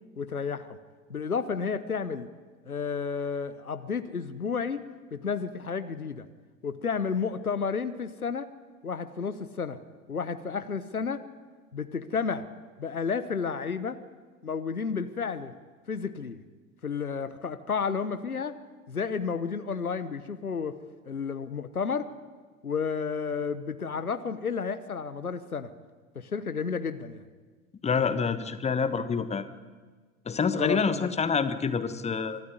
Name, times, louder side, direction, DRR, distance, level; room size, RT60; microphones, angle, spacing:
voice 1, 0.2-0.8 1.1-2.3 2.6-6.2 6.6-8.5 8.8-9.8 10.1-11.2 11.7-12.4 12.8-14.0 14.4-15.5 15.9-16.4 16.8-18.5 18.9-20.8 21.1-22.1 22.6-25.7 26.1-27.2 30.6-31.1, left 5 dB, 85° left, 12 dB, 1.1 m, -31 dB
voice 2, 27.8-29.5 30.2-32.4, left 5 dB, 15° left, 12 dB, 1.3 m, -27 dB
24.0 x 13.5 x 9.8 m, 1.4 s
figure-of-eight pair, 75°, 43 cm